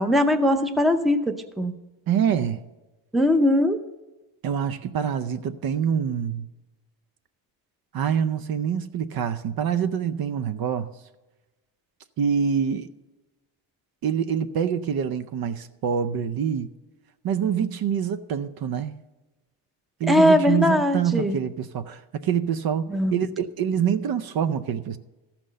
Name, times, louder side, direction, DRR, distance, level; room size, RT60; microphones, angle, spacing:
voice 1, 0.0-1.7 3.1-3.8 20.1-21.4 22.9-23.2, left 1 dB, ahead, 0.6 m, -20 dB
voice 2, 2.1-2.6 4.4-6.5 7.9-10.9 12.2-12.9 14.0-16.7 17.2-18.9 20.0-25.0, right 8 dB, 50° right, 0.6 m, -25 dB
14.0 x 6.0 x 6.5 m
cardioid pair, 120°, 47 cm